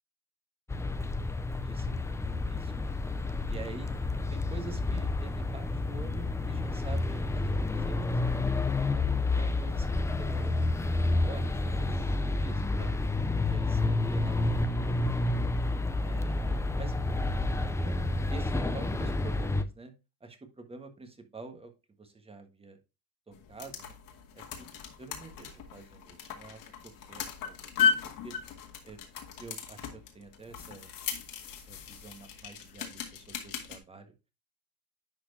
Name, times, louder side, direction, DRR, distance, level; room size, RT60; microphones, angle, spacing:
sound 1, 0.7-19.6, left 2 dB, 10° left, 0.3 m, -30 dB
voice 1, 1.6-2.2 2.4-3.0 3.5-3.9 4.3-8.5 8.8-10.5 11.2-12.9 13.5-15.0 15.9-17.0 17.7-19.9 20.2-21.7 22.0-22.8 23.3-23.9 24.3-24.7 25.0-27.9 28.2-28.3 28.8-29.0 29.4-30.9 31.6-34.1, right 4 dB, 15° right, 6 dB, 1.4 m, -47 dB
sound 2, 23.3-33.8, left 7 dB, 60° left, 1.9 m, -36 dB
10.5 x 4.3 x 2.6 m, 0.28 s
cardioid pair, 115°, 38 cm